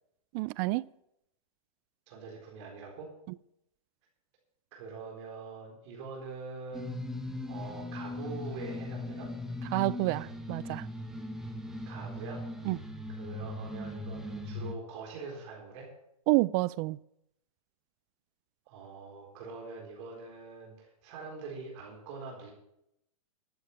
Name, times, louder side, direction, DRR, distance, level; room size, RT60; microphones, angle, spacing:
voice 1, 0.3-0.8 9.7-10.9 12.6-12.8 16.3-17.0, right 21 dB, 35° right, 0.3 m, -28 dB
voice 2, 2.1-3.1 4.7-7.0 7.4-9.3 11.9-12.4 13.1-15.9 18.7-22.5, right 4 dB, 50° right, 4.2 m, -44 dB
sound 1, 6.7-14.7, left 1 dB, ahead, 1.2 m, -39 dB
12.0 x 8.2 x 7.0 m
hypercardioid pair, 130°, 19 cm